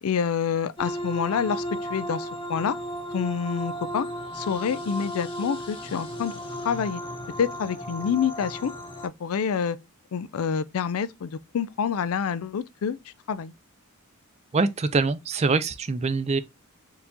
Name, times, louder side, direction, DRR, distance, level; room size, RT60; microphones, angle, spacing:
voice 1, 0.0-2.8 3.1-4.1 4.3-7.0 7.4-8.7 9.0-9.8 10.1-13.0 13.3-13.5, left 7 dB, 70° left, 0.4 m, -27 dB
sound 1, 0.8-9.1, equal, 25° left, 0.9 m, -35 dB
voice 2, 14.5-16.4, right 4 dB, 30° right, 0.4 m, -24 dB
4.7 x 2.7 x 3.6 m
head